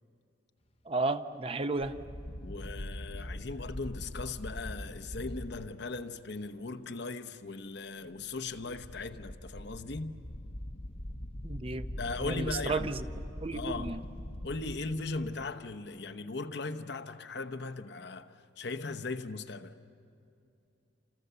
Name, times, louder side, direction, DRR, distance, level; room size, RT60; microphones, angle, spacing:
voice 1, 0.9-1.9 11.4-11.8 12.2-13.1 13.4-14.0, right 3 dB, 30° right, 0.7 m, -33 dB
sound 1, 1.8-5.7 8.5-15.8, left 1 dB, 35° left, 0.9 m, -42 dB
voice 2, 2.4-10.1 11.8-12.9 13.5-13.9 14.4-19.7, left 3 dB, 60° left, 0.9 m, -38 dB
29.0 x 28.0 x 6.9 m
head